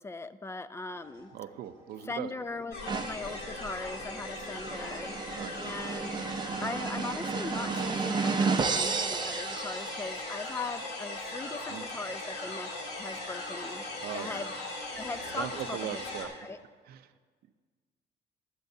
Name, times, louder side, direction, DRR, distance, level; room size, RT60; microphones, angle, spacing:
voice 1, 0.0-1.3 2.0-5.1 5.6-6.2 6.6-12.7 13.0-13.8 14.1-14.5 14.9-16.6, left 3 dB, 15° left, 13 dB, 0.5 m, -39 dB
sound 1, 0.9-16.3, left 1 dB, 50° left, 2.9 m, -56 dB
voice 2, 1.3-2.3 5.3-5.6 11.7-11.8 14.0-14.4 15.4-16.3 16.9-17.0, right 11 dB, 65° right, 9 dB, 0.6 m, -39 dB
sound 2, 2.7-16.2, left 2 dB, 80° left, 2.3 m, -39 dB
sound 3, 2.9-10.4, right 5 dB, 25° right, 0.6 m, -33 dB
23.0 x 7.8 x 2.7 m, 1.5 s
cardioid pair, 110°, 17 cm